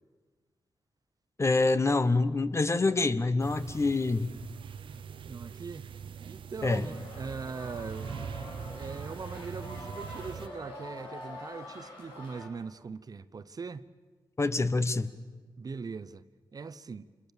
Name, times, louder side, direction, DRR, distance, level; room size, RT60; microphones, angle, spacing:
voice 1, 1.4-4.3 6.6-6.9 14.4-15.1, left 3 dB, 35° left, 1.2 m, -26 dB
sound 1, 3.4-10.5, right 7 dB, 80° right, 0.9 m, -42 dB
voice 2, 5.2-5.9 6.3-8.1 8.7-13.9 15.6-16.2 16.5-17.1, right 4 dB, 45° right, 0.8 m, -41 dB
sound 2, 6.8-12.5, left 1 dB, 75° left, 6.1 m, -45 dB
27.0 x 21.5 x 7.2 m
cardioid pair, 75°, 9 cm